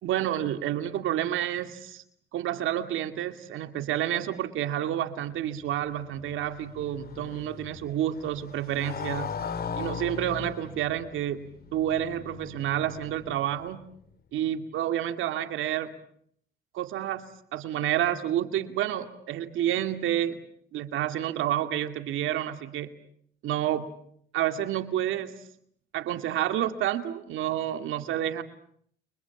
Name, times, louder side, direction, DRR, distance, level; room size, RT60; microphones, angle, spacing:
voice 1, 0.0-2.0 2.3-9.4 9.8-13.8 14.3-15.9 16.7-17.3 17.5-20.4 20.7-22.9 23.4-23.9 24.3-25.3 25.9-28.4, right 11 dB, 85° right, 9 dB, 2.4 m, -29 dB
Motorcycle, 5.6-13.8, left 6 dB, 50° left, 2.1 m, -39 dB
30.0 x 25.0 x 7.2 m, 0.67 s
cardioid pair, 90°, 20 cm